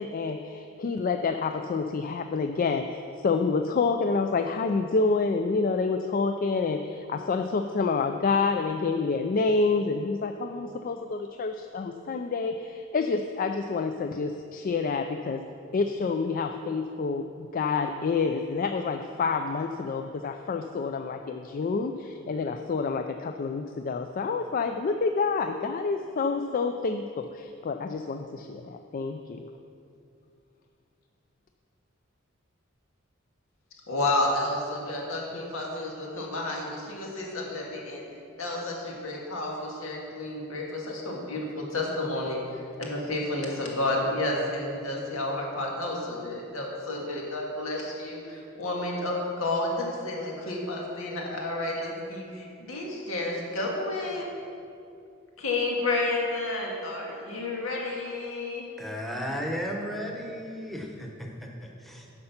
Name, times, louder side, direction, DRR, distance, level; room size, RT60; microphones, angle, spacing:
voice 1, 0.0-15.4 15.7-29.5, left 4 dB, 45° left, 6 dB, 0.4 m, -28 dB
voice 2, 33.9-38.0 38.4-54.3 55.4-58.7, left 2 dB, 85° left, -2 dB, 1.9 m, -31 dB
voice 3, 58.8-62.1, equal, ahead, 0 dB, 1.1 m, -35 dB
9.8 x 6.6 x 5.8 m, 2.5 s
head